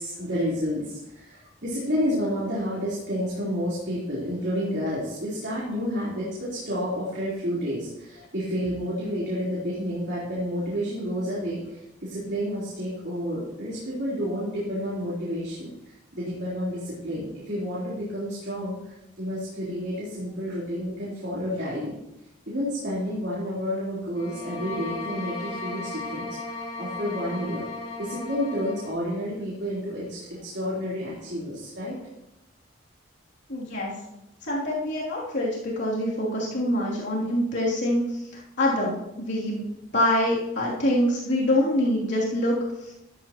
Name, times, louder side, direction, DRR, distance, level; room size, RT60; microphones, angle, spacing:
voice 1, 0.0-21.9 22.5-27.6 28.0-32.0, equal, 55° right, -8 dB, 4.0 m, -30 dB
sound 1, 24.1-29.0, left 2 dB, 30° left, 2.9 m, -36 dB
voice 2, 33.5-33.9 34.4-39.6 39.9-42.9, left 1 dB, 55° left, -6 dB, 3.1 m, -25 dB
13.5 x 13.5 x 3.1 m, 0.89 s
head